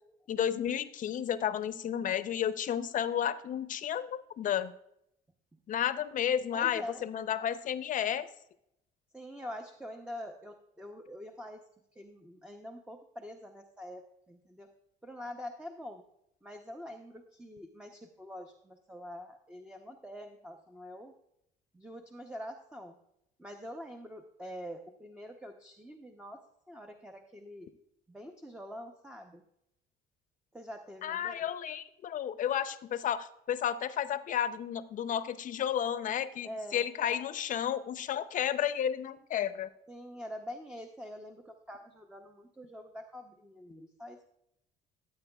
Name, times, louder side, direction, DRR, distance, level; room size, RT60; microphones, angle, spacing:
voice 1, 0.3-4.7 5.7-8.3 31.0-39.7, left 9 dB, 50° left, 13 dB, 0.6 m, -32 dB
voice 2, 6.5-7.0 9.1-11.6 11.9-14.7 15.0-16.0 16.4-21.1 21.7-23.0 23.4-27.7 28.1-29.4 30.5-31.5 36.4-36.8 39.9-44.3, equal, 5° right, 4 dB, 0.7 m, -45 dB
13.5 x 8.6 x 2.3 m, 0.78 s
cardioid pair, 110°, 17 cm